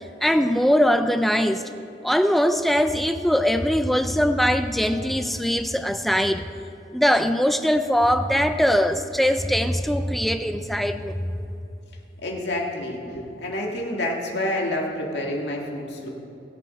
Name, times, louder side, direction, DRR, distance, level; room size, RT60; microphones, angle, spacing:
voice 1, 0.2-1.7 2.0-6.5 6.9-11.4, equal, ahead, 8 dB, 0.4 m, -21 dB
voice 2, 12.2-16.1, left 1 dB, 65° left, -1 dB, 2.1 m, -28 dB
21.5 x 7.4 x 4.3 m, 2.7 s
head